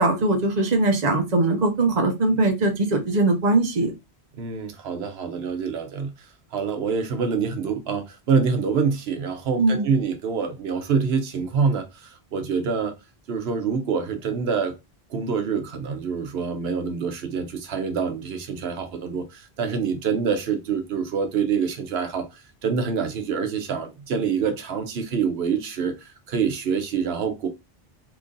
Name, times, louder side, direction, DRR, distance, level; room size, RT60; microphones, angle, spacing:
voice 1, 0.0-3.9 9.6-9.9, right 2 dB, 45° right, 0.9 m, -21 dB
voice 2, 4.4-6.1 6.5-12.9 13.3-14.7 15.1-27.5, right 6 dB, 85° right, 0.9 m, -26 dB
3.0 x 2.5 x 3.6 m
omnidirectional pair, 1.0 m